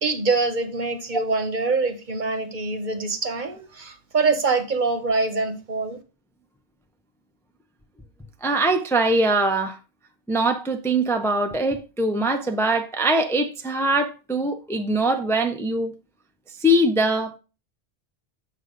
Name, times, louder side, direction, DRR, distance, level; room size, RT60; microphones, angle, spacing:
voice 1, 0.0-6.0, right 3 dB, 50° right, 1.2 m, -24 dB
voice 2, 8.4-9.8 10.3-15.9 16.6-17.4, right 1 dB, 5° left, 0.6 m, -22 dB
8.1 x 6.3 x 3.9 m
omnidirectional pair, 1.1 m